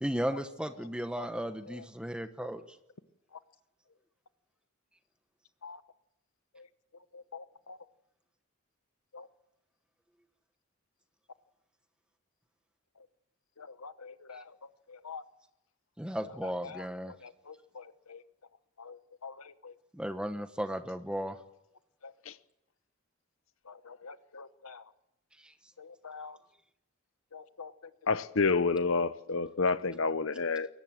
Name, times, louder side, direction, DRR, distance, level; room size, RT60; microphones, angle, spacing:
voice 1, 0.0-2.6 16.0-17.1 19.9-21.4 25.4-25.5, equal, 5° right, 1.1 m, -35 dB
voice 2, 7.1-7.8 9.1-9.3 13.6-14.5 14.9-15.2 16.4-18.2 18.8-19.7 22.0-22.1 23.7-24.8 25.8-26.4 27.3-27.7, left 5 dB, 85° left, 1.1 m, -47 dB
voice 3, 28.1-30.7, left 4 dB, 65° left, 0.8 m, -28 dB
22.0 x 19.5 x 7.6 m
head